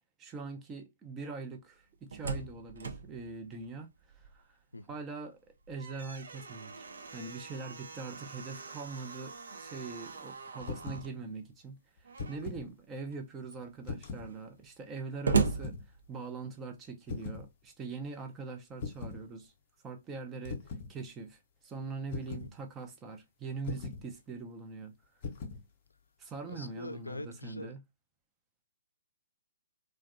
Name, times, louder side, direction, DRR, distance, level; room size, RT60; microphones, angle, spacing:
voice 1, 0.2-4.6 4.9-5.4 5.7-6.9 7.1-19.5 19.8-20.6 20.9-24.9 26.2-27.8, right 4 dB, 20° right, 0.5 m, -42 dB
Slam, 1.8-4.6 5.0-5.1 5.5-11.1 12.0-12.6 13.1-13.2 13.4-16.6, right 4 dB, 65° right, 0.5 m, -38 dB
sound 1, 10.6-11.1 12.0-12.7 13.8-14.3 15.4-15.8 17.1-17.5 18.8-19.2 20.4-20.9 22.1-22.5 23.6-24.0 25.2-25.6, left 4 dB, 40° left, 0.6 m, -40 dB
voice 2, 26.5-27.8, left 2 dB, 85° left, 0.3 m, -43 dB
2.5 x 2.2 x 2.4 m
figure-of-eight pair, 125°, 0 cm